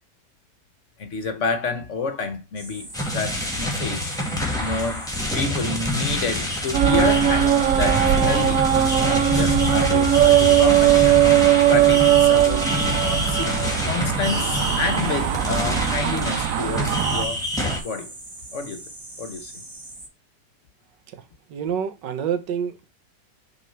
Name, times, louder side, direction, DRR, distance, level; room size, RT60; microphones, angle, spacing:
voice 1, 1.0-4.1 4.6-5.1 5.3-11.2 11.7-13.5 13.9-17.4 17.8-18.1 18.5-18.8 19.2-19.5, left 4 dB, 55° left, 0.9 m, -29 dB
sound 1, 2.6-20.1, right 2 dB, 20° right, 0.6 m, -40 dB
sound 2, 2.9-17.8, left 1 dB, ahead, 1.6 m, -26 dB
sound 3, 6.7-17.3, right 12 dB, 65° right, 0.8 m, -19 dB
voice 2, 21.5-22.9, right 8 dB, 85° right, 1.6 m, -27 dB
6.1 x 3.9 x 4.4 m
omnidirectional pair, 1.8 m